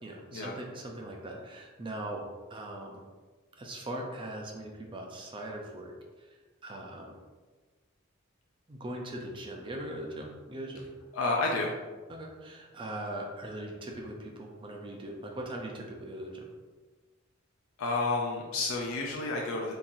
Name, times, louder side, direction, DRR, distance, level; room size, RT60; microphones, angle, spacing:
voice 1, 0.0-2.2 2.5-3.0 3.6-5.9 6.2-7.2 8.7-10.9 12.1-16.5, right 1 dB, 25° right, 0 dB, 0.5 m, -40 dB
voice 2, 11.1-11.7 17.8-19.7, left 3 dB, 85° left, -1 dB, 0.5 m, -30 dB
4.0 x 2.9 x 2.6 m, 1.3 s
head